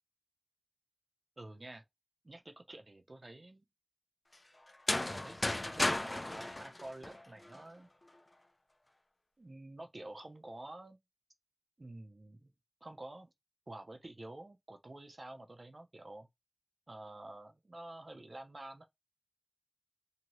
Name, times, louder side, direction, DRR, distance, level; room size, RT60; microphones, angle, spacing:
voice 1, 1.4-1.8 2.2-3.7 4.9-7.9 9.4-11.0 11.8-12.5 12.8-13.3 13.7-16.3 16.9-18.8, right 2 dB, 80° right, 0.6 m, -49 dB
sound 1, 4.7-7.6, left 1 dB, 55° left, 0.4 m, -34 dB
2.8 x 2.7 x 3.0 m
wide cardioid pair, 50°, 0 cm